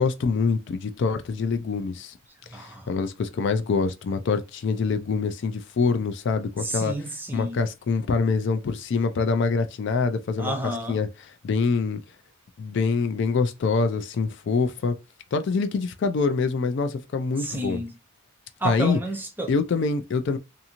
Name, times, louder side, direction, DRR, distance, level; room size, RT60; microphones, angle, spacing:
voice 1, 0.0-2.1 2.5-6.9 7.3-10.5 10.9-11.1 11.4-12.0 12.6-15.0 15.3-17.8 18.6-19.0 19.5-20.4, left 4 dB, 55° left, 0.3 m, -25 dB
voice 2, 2.5-2.9 6.6-7.6 10.4-11.0 17.4-17.9 18.6-19.5, right 1 dB, 10° right, 0.4 m, -31 dB
2.6 x 2.5 x 2.8 m
head